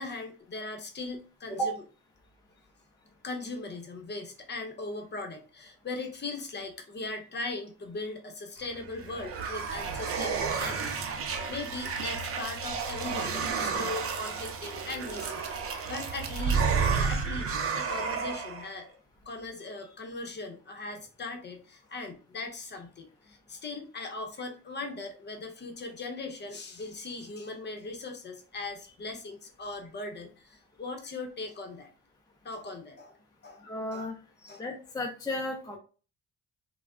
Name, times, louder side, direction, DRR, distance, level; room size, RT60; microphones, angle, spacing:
voice 1, 0.0-1.7 3.2-18.9 19.2-31.9 32.4-33.2 33.4-33.6 33.9-34.1 34.4-34.6, left 3 dB, 35° left, 3 dB, 0.8 m, -39 dB
sound 1, 8.7-18.7, right 5 dB, 50° right, 0.5 m, -31 dB
voice 2, 33.6-34.1 34.6-35.8, equal, 15° left, 0 dB, 0.4 m, -33 dB
3.3 x 2.1 x 2.3 m, 0.37 s
cardioid pair, 90°, 30 cm